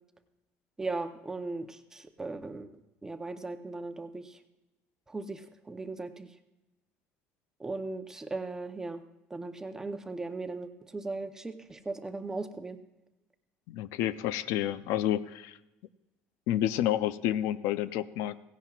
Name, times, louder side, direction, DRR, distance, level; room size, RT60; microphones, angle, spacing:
voice 1, 0.8-2.7 3.0-4.4 5.1-6.3 7.6-9.0 9.3-12.8, right 3 dB, 10° right, 7 dB, 0.8 m, -38 dB
voice 2, 13.7-15.6 16.5-18.4, left 12 dB, 75° left, 14 dB, 0.5 m, -29 dB
17.0 x 16.5 x 2.4 m, 1.0 s
cardioid pair, 150°, 5 cm